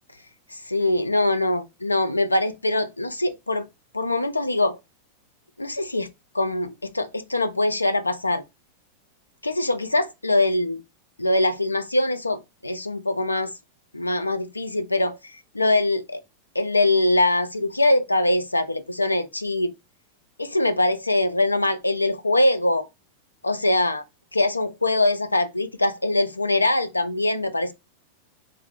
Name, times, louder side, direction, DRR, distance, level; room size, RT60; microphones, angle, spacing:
voice 1, 0.5-3.7 3.9-4.8 5.6-6.1 6.3-8.4 9.4-10.8 11.2-13.5 13.9-16.2 16.6-19.7 20.4-22.9 23.4-24.0 24.3-27.7, left 2 dB, 85° left, 0.4 m, -23 dB
3.1 x 2.4 x 3.7 m
figure-of-eight pair, 90°, 0 cm